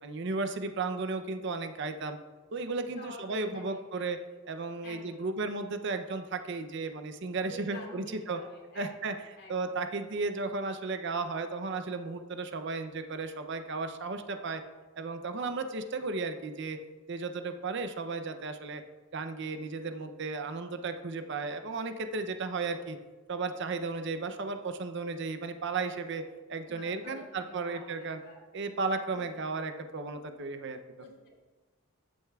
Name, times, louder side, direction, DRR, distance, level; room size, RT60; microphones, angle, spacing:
voice 1, 0.0-2.2 2.5-4.2 4.5-8.4 8.8-9.1 9.5-14.6 15.0-16.8 17.1-18.8 19.1-23.0 23.3-26.2 26.5-28.2 28.5-30.8, right 3 dB, 55° right, 8 dB, 0.6 m, -34 dB
voice 2, 2.7-4.1 4.8-5.3 7.5-9.8 26.7-28.4 29.1-29.3 31.0-31.3, left 2 dB, 50° left, -2 dB, 2.4 m, -48 dB
14.0 x 8.0 x 2.3 m, 1.3 s
head